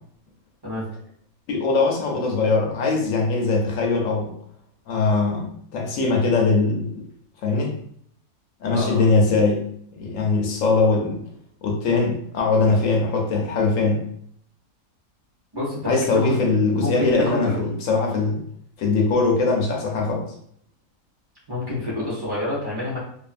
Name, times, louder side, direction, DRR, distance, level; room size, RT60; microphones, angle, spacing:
voice 1, 1.5-4.3 4.9-7.1 7.4-7.8 8.6-9.6 9.9-11.2 11.6-14.0 15.8-18.4 18.8-20.3, left 3 dB, 65° left, 0 dB, 0.9 m, -21 dB
voice 2, 8.7-9.1 15.5-16.4 16.8-17.6 21.5-23.0, left 1 dB, 20° right, -7 dB, 0.7 m, -28 dB
2.6 x 2.5 x 2.4 m, 0.66 s
omnidirectional pair, 1.6 m